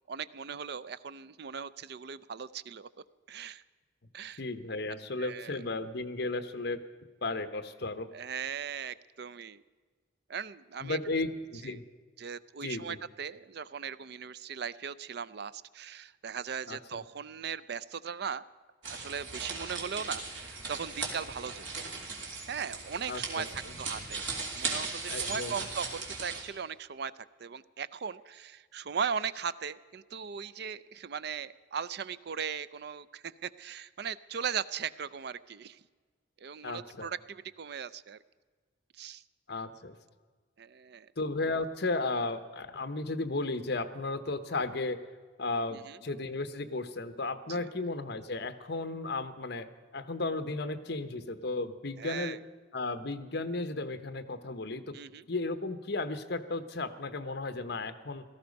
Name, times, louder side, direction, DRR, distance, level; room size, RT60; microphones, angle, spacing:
voice 1, 0.1-2.9 3.3-3.6 4.1-4.4 5.2-5.6 8.1-9.6 10.3-11.0 11.6-11.8 12.2-18.5 18.9-21.8 22.5-23.5 23.8-24.2 24.5-27.1 27.4-35.8 36.4-38.2 39.0-39.2 40.6-41.1 45.7-46.0 47.5-47.7 52.0-52.4 54.9-55.3, right 7 dB, 60° right, 17 dB, 0.5 m, -38 dB
voice 2, 4.4-6.8 7.2-8.1 10.8-11.8 12.6-13.0 16.7-17.0 23.1-23.7 25.1-25.5 36.6-37.1 39.5-40.0 41.2-45.0 45.4-52.4 52.7-55.0 55.3-58.2, left 2 dB, 60° left, 10 dB, 1.0 m, -34 dB
sound 1, 18.8-26.4, right 4 dB, 80° right, 3.1 m, -38 dB
17.5 x 14.5 x 5.3 m, 1.5 s
head